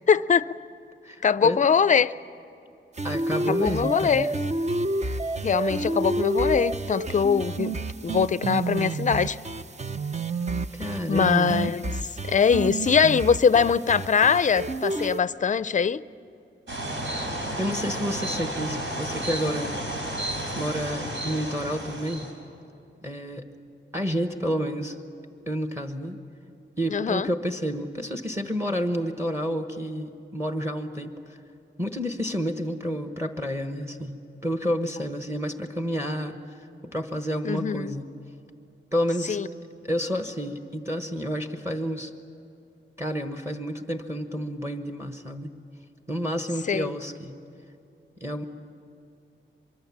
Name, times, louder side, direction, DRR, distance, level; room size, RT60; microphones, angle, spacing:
voice 1, 0.1-0.6 1.2-2.1 3.5-4.3 5.4-9.4 11.1-16.0 26.9-27.3 37.4-37.9 39.3-39.5 46.7-46.9, left 6 dB, 40° left, 16 dB, 0.5 m, -22 dB
voice 2, 1.0-1.6 3.0-4.3 10.7-11.6 17.6-19.7 20.5-22.3 23.0-23.4 23.9-25.0 25.5-26.2 26.8-31.1 31.8-36.3 36.9-38.1 38.9-39.4 39.8-42.1 43.0-45.5 46.1-47.3 48.2-48.4, equal, 15° right, 6 dB, 1.2 m, -30 dB
sound 1, 3.0-15.2, right 2 dB, 35° right, 0.7 m, -29 dB
sound 2, 16.7-22.3, right 1 dB, 75° right, 5.0 m, -32 dB
23.5 x 23.5 x 7.3 m, 2.7 s
wide cardioid pair, 140°, 20 cm